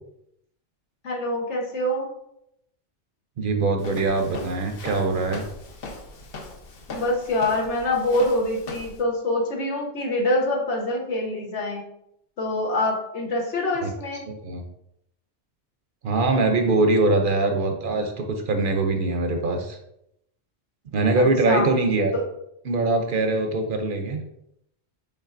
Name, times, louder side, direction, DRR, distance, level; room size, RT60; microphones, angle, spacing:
voice 1, 1.0-2.1 6.9-11.8 12.4-14.3 21.1-21.7 22.1-22.2, left 1 dB, 85° left, -1 dB, 1.4 m, -25 dB
voice 2, 3.4-5.4 13.8-13.9 14.3-14.6 16.0-19.8 20.9-22.1 22.7-24.2, right 3 dB, 55° right, 4 dB, 0.7 m, -22 dB
Walk footsteps, 3.8-9.0, left 3 dB, 60° left, 0.9 m, -39 dB
5.4 x 3.7 x 2.5 m, 0.78 s
omnidirectional pair, 1.1 m